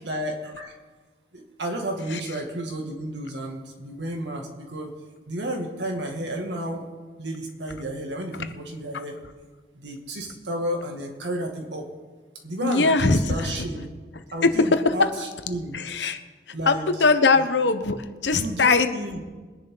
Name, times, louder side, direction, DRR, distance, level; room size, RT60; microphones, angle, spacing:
voice 1, 0.0-0.7 1.3-4.9 5.3-6.9 7.2-9.2 9.7-11.9 12.4-13.9 14.3-15.8 16.5-16.8 17.3-17.4 18.3-19.2, right 1 dB, 75° right, 2 dB, 2.3 m, -32 dB
voice 2, 12.6-13.5 14.4-14.9 15.7-16.2 16.7-16.8 17.0-18.0 18.2-18.9, left 3 dB, 80° left, 9 dB, 1.0 m, -20 dB
22.5 x 10.5 x 4.0 m, 1.4 s
head